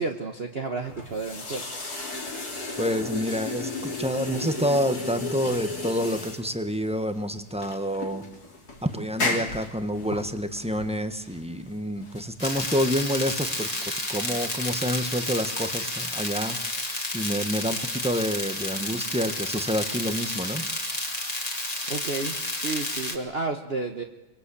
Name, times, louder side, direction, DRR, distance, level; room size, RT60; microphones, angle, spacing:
voice 1, 0.0-1.7 10.1-10.2 21.9-24.0, right 3 dB, 35° right, 3 dB, 1.3 m, -31 dB
sound 1, 0.8-13.3, left 3 dB, 50° left, 3.7 m, -34 dB
voice 2, 2.8-8.2 8.8-20.6, equal, 5° right, 8 dB, 1.2 m, -28 dB
sound 2, 12.4-23.2, left 1 dB, 20° left, 2.5 m, -31 dB
25.0 x 22.0 x 8.6 m, 1.0 s
omnidirectional pair, 2.1 m